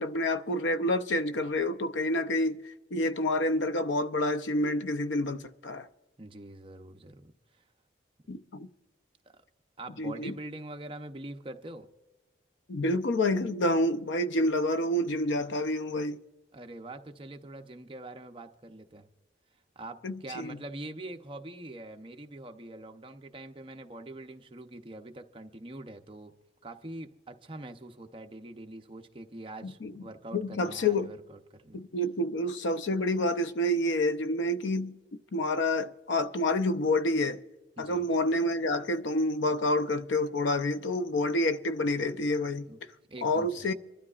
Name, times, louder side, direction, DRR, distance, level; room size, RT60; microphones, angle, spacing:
voice 1, 0.0-2.6 2.9-5.9 8.3-8.7 10.0-10.3 12.7-16.2 20.0-20.6 29.6-30.0 30.3-31.1 31.7-35.0 35.3-37.4 37.8-42.7 43.2-43.7, left 1 dB, 80° left, 0.6 m, -28 dB
voice 2, 6.2-7.1 9.8-11.9 16.5-19.1 19.8-26.3 26.6-31.8 37.8-38.0 42.6-42.8 43.1-43.7, right 2 dB, 25° right, 0.7 m, -44 dB
25.5 x 12.5 x 2.4 m
head